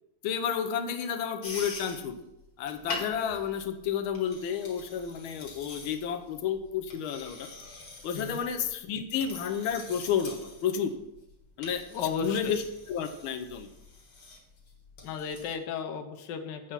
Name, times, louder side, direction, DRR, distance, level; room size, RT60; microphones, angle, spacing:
voice 1, 0.2-2.2 2.6-7.5 8.0-10.9 11.6-11.8 12.2-12.6 12.9-13.7, left 8 dB, 90° left, 7 dB, 1.6 m, -31 dB
sound 1, 1.4-15.5, left 3 dB, 50° left, 2.0 m, -45 dB
voice 2, 11.9-12.5 15.0-16.7, left 6 dB, 65° left, 6 dB, 1.5 m, -34 dB
8.0 x 6.4 x 5.7 m, 0.90 s
omnidirectional pair, 2.2 m